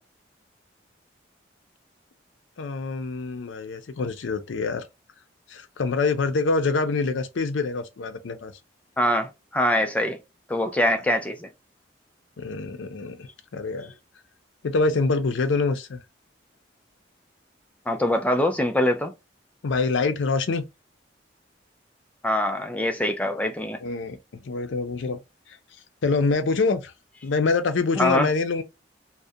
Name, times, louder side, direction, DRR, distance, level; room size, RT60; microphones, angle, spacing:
voice 1, 2.6-4.8 5.5-8.5 12.4-13.9 14.6-16.0 19.6-20.7 23.8-25.2 25.5-25.6 26.0-26.9 27.2-28.6, left 4 dB, 80° left, 0.5 m, -25 dB
voice 2, 9.0-10.2 10.5-11.5 17.9-19.1 22.2-23.8 28.0-28.3, left 1 dB, 5° left, 0.3 m, -23 dB
2.4 x 2.1 x 2.6 m
head